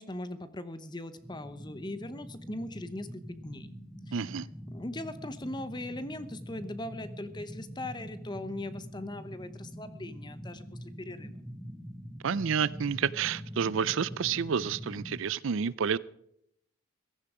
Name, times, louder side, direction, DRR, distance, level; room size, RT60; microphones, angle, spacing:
voice 1, 0.0-3.7 4.1-4.2 4.7-11.3, left 1 dB, 20° left, 0.8 m, -40 dB
sound 1, 1.2-15.2, equal, ahead, 1.3 m, -44 dB
voice 2, 4.1-4.5 12.2-16.0, right 7 dB, 60° right, 0.4 m, -29 dB
16.0 x 13.5 x 4.9 m
head